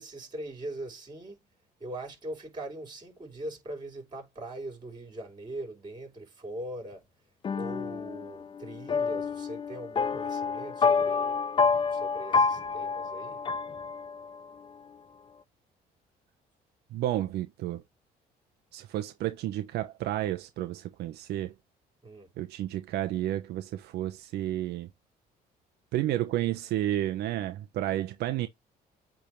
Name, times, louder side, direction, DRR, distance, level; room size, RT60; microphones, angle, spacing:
voice 1, 0.0-1.5 1.8-7.0 7.5-11.4 11.9-13.5 22.0-22.3, right 1 dB, 25° right, 5.0 m, -41 dB
sound 1, 7.4-14.4, left 5 dB, 30° left, 0.5 m, -28 dB
voice 2, 16.9-17.8 18.7-21.5 22.4-24.9 25.9-28.5, right 13 dB, 75° right, 0.8 m, -31 dB
8.5 x 3.6 x 3.1 m
cardioid pair, 110°, 17 cm